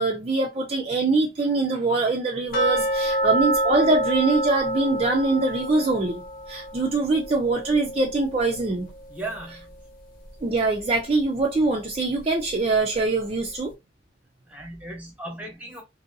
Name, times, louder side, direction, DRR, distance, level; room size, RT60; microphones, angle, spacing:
voice 1, 0.0-8.9 10.4-13.7, right 3 dB, 35° right, 0.4 m, -23 dB
sound 1, 2.5-9.4 9.7-9.8 10.3-10.4 10.9-11.0, right 1 dB, 50° left, 1.0 m, -28 dB
voice 2, 9.1-9.7 14.5-15.8, right 2 dB, 10° right, 0.9 m, -36 dB
2.7 x 2.6 x 2.6 m
head